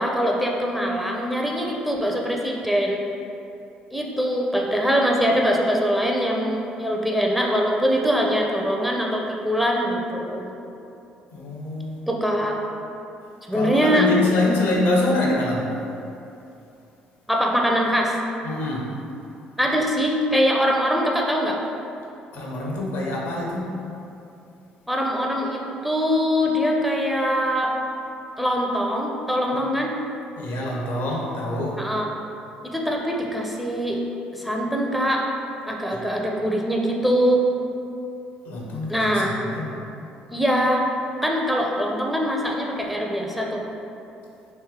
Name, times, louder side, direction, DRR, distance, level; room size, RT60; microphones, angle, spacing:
voice 1, 0.0-3.0 3.9-10.5 12.1-12.6 13.5-14.1 17.3-18.1 19.6-21.6 24.9-27.7 28.4-29.9 31.8-32.1 32.7-34.0 34.3-35.2 35.7-37.4 38.9-39.4 40.3-40.9 41.2-43.6, equal, ahead, -1 dB, 0.5 m, -23 dB
voice 2, 11.3-12.1 13.5-15.7 18.4-18.9 22.3-23.8 29.5-29.6 30.4-31.8 35.9-36.0 38.4-39.8, left 2 dB, 70° left, -2 dB, 0.7 m, -25 dB
3.2 x 2.6 x 3.7 m, 2.7 s
hypercardioid pair, 55°, 4 cm